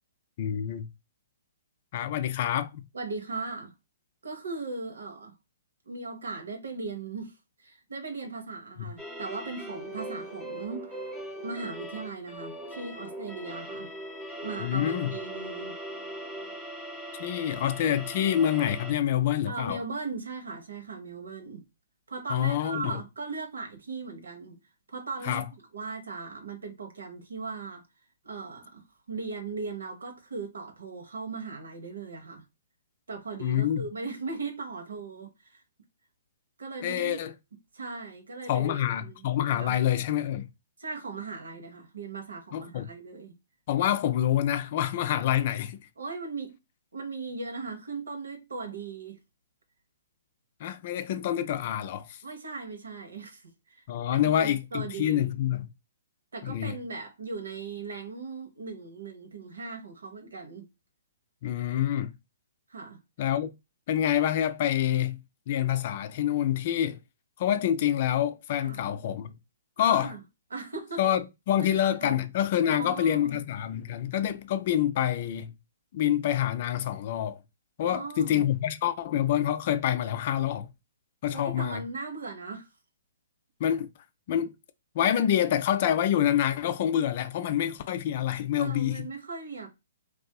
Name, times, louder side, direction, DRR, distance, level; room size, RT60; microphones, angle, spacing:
voice 1, 0.4-0.9 1.9-2.8 8.8-8.9 14.6-15.1 17.2-19.8 22.3-23.0 25.2-25.5 33.4-33.8 36.8-37.3 38.5-40.5 42.5-42.9 43.7-45.8 50.6-52.2 53.9-55.7 56.4-56.8 61.4-62.1 63.2-63.5 63.9-65.2 65.5-67.0 67.4-69.3 69.8-70.1 71.0-75.5 75.9-77.4 77.8-80.7 81.2-81.8 83.6-83.9 84.3-84.5 84.9-89.1, left 11 dB, 45° left, 0.3 m, -27 dB
voice 2, 2.9-3.7 4.2-5.3 5.9-11.0 11.4-13.9 14.4-15.8 19.5-21.6 22.1-24.6 24.9-25.4 25.7-27.8 28.2-32.4 33.1-35.6 36.6-37.2 37.7-39.7 40.8-43.3 46.0-46.5 46.9-49.2 52.2-53.8 54.1-55.3 56.3-60.7 62.7-63.0 68.6-68.8 69.8-70.2 70.5-71.1 71.6-72.2 72.7-73.4 77.8-78.5 81.3-82.7 88.6-89.7, right 4 dB, 80° right, 0.7 m, -38 dB
sound 1, 9.0-18.9, right 1 dB, 10° right, 0.7 m, -40 dB
2.6 x 2.3 x 2.2 m
hypercardioid pair, 130°, 0 cm